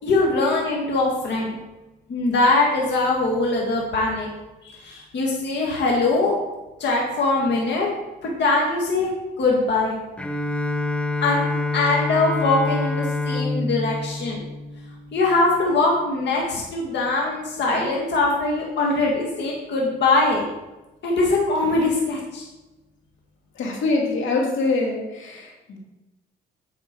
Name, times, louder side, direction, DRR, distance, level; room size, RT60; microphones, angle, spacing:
voice 1, 0.0-1.5 2.1-4.3 4.6-6.3 6.8-7.9 8.2-9.1 9.4-10.0 11.2-11.4 11.7-14.4 15.1-20.5 21.0-22.5, left 2 dB, 60° left, -2 dB, 1.8 m, -22 dB
Bowed string instrument, 10.2-15.4, left 3 dB, 5° left, 0.7 m, -26 dB
voice 2, 23.6-25.8, left 3 dB, 80° left, 0 dB, 2.1 m, -24 dB
8.4 x 6.1 x 4.6 m, 1.0 s
cardioid pair, 90°, 20 cm